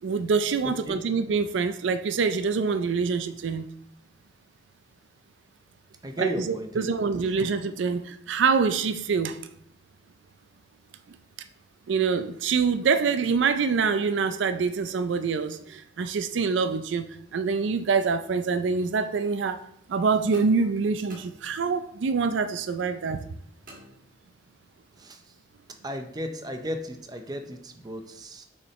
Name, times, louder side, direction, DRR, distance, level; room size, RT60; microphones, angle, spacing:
voice 1, 0.0-3.7 6.2-9.4 11.1-11.2 11.9-17.1 17.3-19.6 19.9-23.3, right 5 dB, 75° right, 10 dB, 0.4 m, -25 dB
voice 2, 0.6-1.0 6.0-7.1 25.0-25.2 25.8-28.4, equal, 20° right, 6 dB, 0.5 m, -34 dB
sound 1, 20.3-22.0 23.7-24.6, right 1 dB, 45° right, 1.4 m, -51 dB
6.3 x 5.6 x 3.1 m, 0.69 s
head